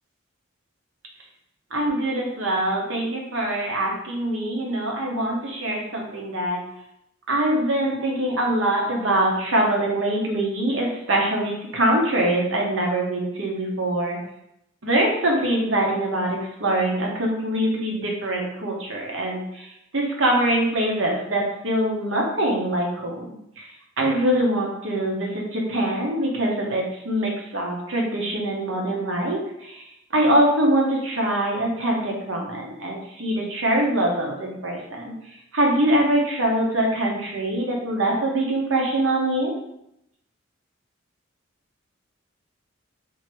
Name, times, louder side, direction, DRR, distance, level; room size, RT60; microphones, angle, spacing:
voice 1, 1.7-6.6 7.3-14.2 14.8-19.7 19.9-23.3 23.6-23.7 24.0-29.8 30.1-35.1 35.5-39.6, right 1 dB, 70° right, -1 dB, 1.0 m, -23 dB
3.0 x 2.8 x 4.4 m, 0.79 s
head